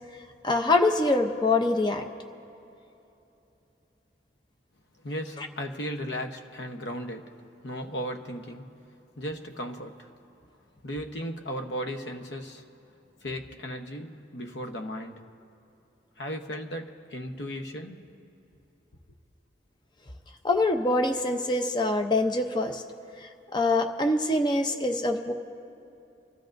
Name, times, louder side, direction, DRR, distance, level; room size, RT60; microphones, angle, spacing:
voice 1, 0.4-2.0 5.4-5.5 20.4-22.8 23.2-25.3, left 2 dB, 25° left, 4 dB, 0.6 m, -24 dB
voice 2, 5.0-7.4 7.6-8.8 9.2-10.1 10.8-12.7 13.2-15.3 16.2-18.1, equal, 70° left, 5 dB, 0.9 m, -36 dB
27.5 x 13.0 x 2.6 m, 2.9 s
head